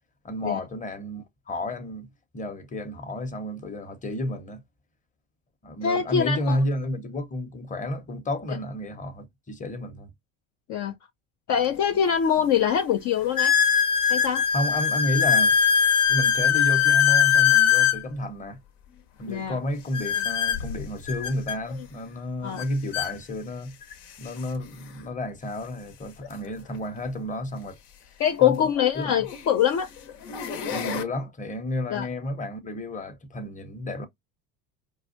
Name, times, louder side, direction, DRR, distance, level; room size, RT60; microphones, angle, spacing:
voice 1, 0.2-4.6 5.6-10.1 14.5-15.6 16.1-18.6 19.2-23.8 24.2-27.8 28.4-29.3 30.7-34.1, left 1 dB, 20° left, 0.9 m, -31 dB
voice 2, 5.8-6.6 10.7-10.9 11.5-13.5 14.1-14.4 19.3-19.6 22.4-22.6 28.2-29.9 31.9-32.1, left 9 dB, 45° left, 0.6 m, -23 dB
sound 1, 11.6-11.7 12.4-12.5 13.4-18.0 19.9-21.6 22.6-22.7 22.9-23.1 23.9-24.0 26.2-26.3 28.4-28.5 29.2-29.5 30.1-31.0, left 8 dB, 70° left, 1.0 m, -22 dB
4.7 x 2.4 x 2.5 m
hypercardioid pair, 75°, 41 cm